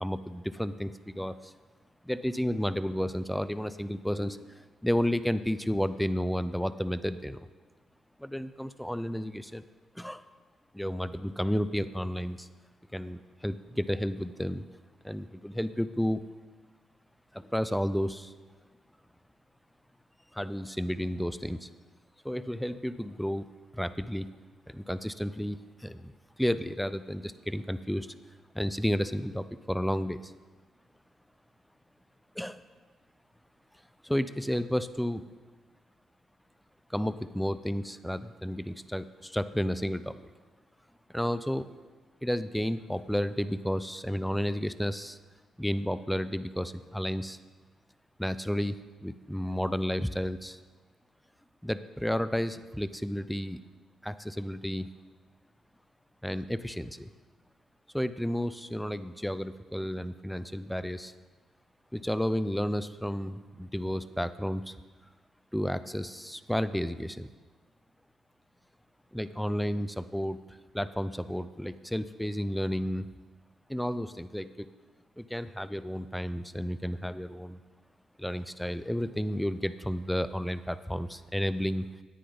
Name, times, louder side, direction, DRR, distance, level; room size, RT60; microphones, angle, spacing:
voice 1, 0.0-1.5 2.1-7.4 8.2-9.6 10.0-10.2 10.7-12.5 12.9-14.6 15.0-16.2 17.3-18.3 20.3-21.7 22.2-23.5 23.7-24.3 24.7-26.1 26.4-28.1 28.5-30.3 32.4-32.6 34.0-35.2 36.9-40.2 41.1-41.7 42.2-45.2 45.6-47.4 48.2-48.8 49.0-50.6 51.6-53.6 54.0-54.9 56.2-57.1 57.9-61.1 61.9-64.7 65.5-67.3 69.1-70.4 70.7-73.1 73.7-74.7 75.2-77.6 78.2-81.8, equal, 5° left, 13 dB, 0.5 m, -32 dB
17.0 x 10.0 x 4.0 m, 1.3 s
cardioid pair, 110°, 0 cm